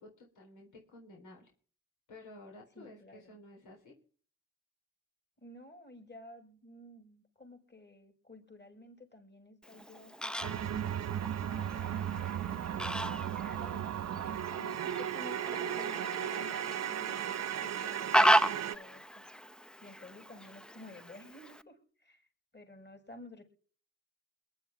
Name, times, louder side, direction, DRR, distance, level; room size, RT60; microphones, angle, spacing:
voice 1, 0.0-1.5 2.1-4.0, left 2 dB, 80° left, 0 dB, 4.2 m, -53 dB
voice 2, 2.7-3.4 5.4-10.9 11.5-12.1 12.7-17.2 17.6-19.5 19.8-22.3 22.5-23.4, left 1 dB, 35° left, 4 dB, 6.7 m, -53 dB
Fowl, 9.6-21.6, equal, 5° left, 0.6 m, -35 dB
sound 1, 10.4-18.8, right 10 dB, 60° right, 0.7 m, -36 dB
22.0 x 11.0 x 3.7 m, 0.43 s
supercardioid pair, 55°, 30 cm